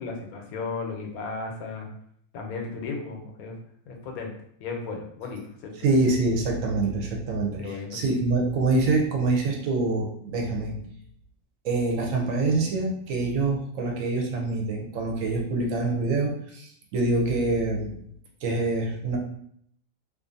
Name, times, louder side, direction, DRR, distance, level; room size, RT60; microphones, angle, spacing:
voice 1, 0.0-1.9 2.3-3.6 3.9-4.3 4.6-5.9 7.6-8.0, left 4 dB, 90° left, 2 dB, 1.1 m, -35 dB
voice 2, 5.8-10.8 11.6-17.9 18.4-19.2, right 3 dB, 75° right, 1 dB, 0.9 m, -25 dB
2.5 x 2.4 x 2.5 m, 0.67 s
omnidirectional pair, 1.5 m